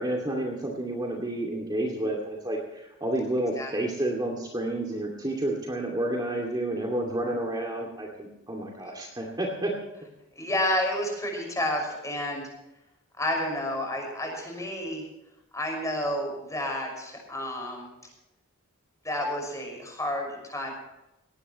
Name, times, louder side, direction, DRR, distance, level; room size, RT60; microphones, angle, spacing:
voice 1, 0.0-9.7, right 1 dB, 20° right, -1 dB, 2.4 m, -30 dB
voice 2, 10.4-12.4 13.1-15.0 15.5-17.9 19.0-20.7, left 1 dB, 15° left, 1 dB, 5.9 m, -30 dB
19.0 x 18.0 x 3.1 m, 0.95 s
head